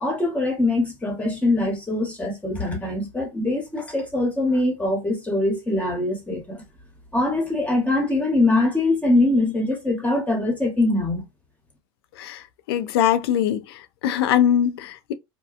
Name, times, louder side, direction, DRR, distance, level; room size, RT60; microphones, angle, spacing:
voice 1, 0.0-6.6 7.1-11.2, left 2 dB, 10° left, 1.0 m, -23 dB
voice 2, 12.2-15.1, left 10 dB, 90° left, 0.4 m, -22 dB
2.8 x 2.2 x 2.4 m
supercardioid pair, 105°, 12 cm